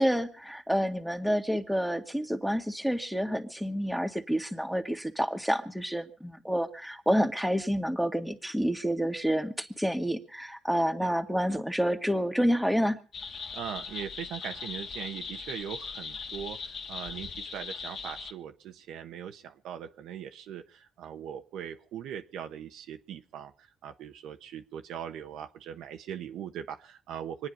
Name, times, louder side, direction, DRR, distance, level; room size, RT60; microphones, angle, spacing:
voice 1, 0.0-13.0, equal, ahead, 5 dB, 2.0 m, -28 dB
sound 1, 13.1-18.3, left 5 dB, 60° left, 1.6 m, -39 dB
voice 2, 13.5-27.5, right 9 dB, 85° right, 6 dB, 1.2 m, -40 dB
25.0 x 9.6 x 5.4 m, 0.38 s
cardioid pair, 90°, 0 cm